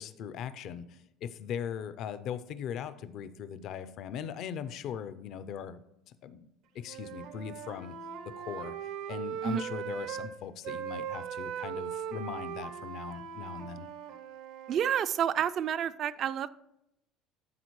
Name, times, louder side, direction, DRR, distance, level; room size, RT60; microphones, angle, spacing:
voice 1, 0.0-5.8 6.1-6.5 6.7-8.0 8.4-8.8 9.1-13.9, left 8 dB, 60° left, 13 dB, 0.5 m, -39 dB
Wind instrument woodwind instrument, 6.8-10.3 10.6-14.8, right 9 dB, 75° right, 0.7 m, -39 dB
voice 2, 14.7-16.5, right 9 dB, 50° right, 15 dB, 0.4 m, -29 dB
12.5 x 4.3 x 3.1 m, 0.82 s
supercardioid pair, 110°, 0 cm